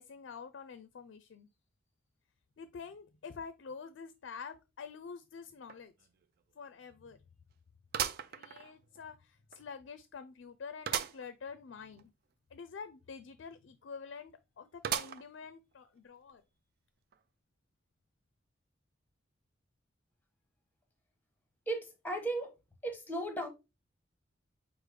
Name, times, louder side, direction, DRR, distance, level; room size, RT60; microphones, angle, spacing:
voice 1, 0.0-1.5 2.6-5.9 6.6-7.2 8.3-12.1 12.5-16.4, left 5 dB, 70° left, 0.4 m, -47 dB
sound 1, 5.7-5.8 6.2-6.3 7.9-9.0 9.5-9.6 10.9-11.3 11.7-11.8 12.0-12.1 14.8-15.5 16.0-16.1 17.1-17.2, right 9 dB, 50° right, 0.3 m, -36 dB
voice 2, 21.7-22.5 22.8-23.5, right 2 dB, 10° left, 0.9 m, -36 dB
4.9 x 2.0 x 4.7 m
head